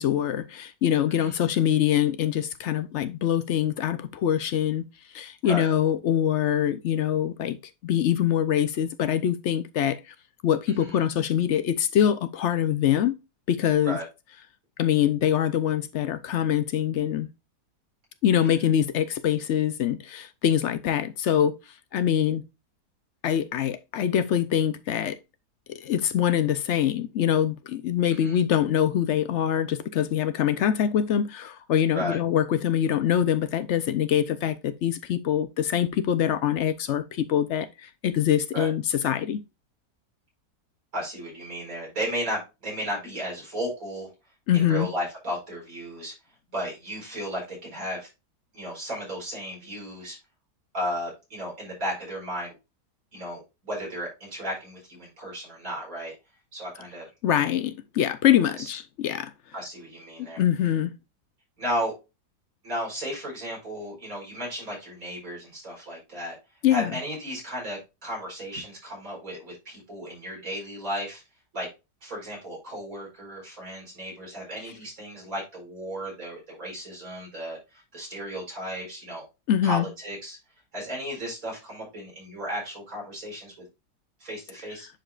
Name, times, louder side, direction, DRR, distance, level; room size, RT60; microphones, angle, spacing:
voice 1, 0.0-4.8 5.1-7.6 7.8-10.1 10.4-13.1 13.5-14.0 14.8-17.3 18.2-21.6 21.9-22.4 23.2-25.2 25.7-39.4 44.5-44.9 57.2-59.3 60.2-60.9 66.6-66.9 79.5-79.9, left 10 dB, 65° left, 0.7 m, -24 dB
voice 2, 10.7-11.0 13.8-14.0 18.4-18.7 28.1-28.4 31.9-32.2 38.5-38.7 40.9-44.1 44.5-46.1 46.5-48.1 48.5-50.2 50.7-52.6 53.1-56.1 56.5-57.1 58.6-58.7 59.5-60.4 61.6-61.9 62.6-66.4 66.7-71.2 71.5-71.7 72.0-79.2 79.6-80.4 80.7-83.5 84.2-84.9, equal, 55° right, 5.1 m, -34 dB
10.5 x 5.1 x 2.4 m
omnidirectional pair, 1.7 m